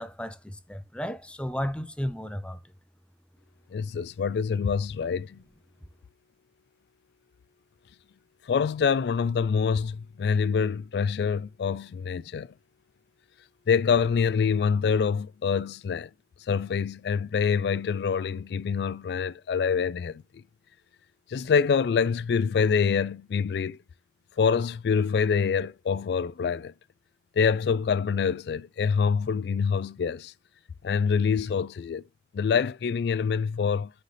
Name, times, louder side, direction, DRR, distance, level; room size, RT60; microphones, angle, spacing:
voice 1, 0.0-2.6, equal, 5° left, 0.5 m, -33 dB
voice 2, 3.7-5.4 8.5-12.5 13.7-16.1 16.5-20.2 21.3-23.8 24.4-26.7 27.4-30.3 30.8-32.0 32.3-33.9, left 6 dB, 65° left, 0.3 m, -25 dB
9.4 x 4.0 x 3.3 m
head